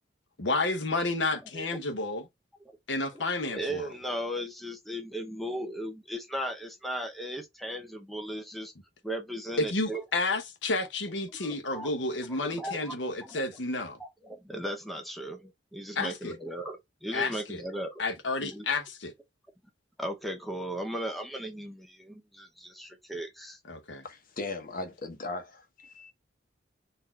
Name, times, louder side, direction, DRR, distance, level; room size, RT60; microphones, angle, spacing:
voice 1, 0.4-2.2 2.9-3.9 9.6-14.0 15.9-16.4 17.1-17.6 18.0-19.1 23.7-24.0, left 2 dB, 85° left, 1.0 m, -31 dB
voice 2, 3.5-8.7 9.0-10.0 11.4-11.9 12.3-13.6 14.0-17.9 18.4-18.6 20.0-23.6, right 1 dB, ahead, 0.7 m, -37 dB
voice 3, 24.0-26.1, left 2 dB, 50° left, 1.0 m, -38 dB
4.1 x 2.7 x 4.2 m
head